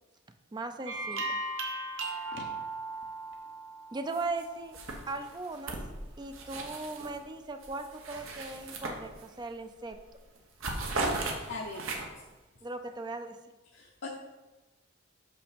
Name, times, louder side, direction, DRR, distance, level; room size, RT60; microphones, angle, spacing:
voice 1, 0.5-1.4 3.9-4.8 5.1-5.8 6.2-10.0 12.6-13.4, right 3 dB, 20° right, 8 dB, 0.4 m, -38 dB
sound 1, 0.8-4.4, right 2 dB, 60° right, 1.1 m, -37 dB
sound 2, 4.1-4.4 4.7-7.2 7.6-9.5 9.9-10.1 10.4-12.3, right 2 dB, 85° right, 1.2 m, -37 dB
voice 2, 11.5-12.2 13.7-14.1, left 3 dB, 60° left, 0 dB, 0.7 m, -41 dB
6.2 x 6.0 x 5.0 m, 1.1 s
head